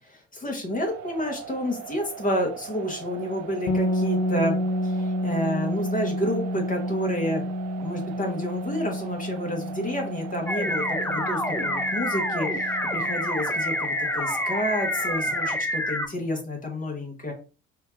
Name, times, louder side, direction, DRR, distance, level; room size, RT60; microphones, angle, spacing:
voice 1, 0.1-4.6 4.8-7.4 7.8-17.3, equal, 25° left, 1 dB, 1.5 m, -30 dB
sound 1, 0.8-15.6, right 9 dB, 50° right, 0.5 m, -41 dB
sound 2, 3.7-13.4, equal, 45° left, 0.9 m, -30 dB
sound 3, 10.5-16.1, left 1 dB, 5° left, 0.6 m, -27 dB
4.4 x 2.7 x 2.6 m, 0.34 s
figure-of-eight pair, 50°, 33 cm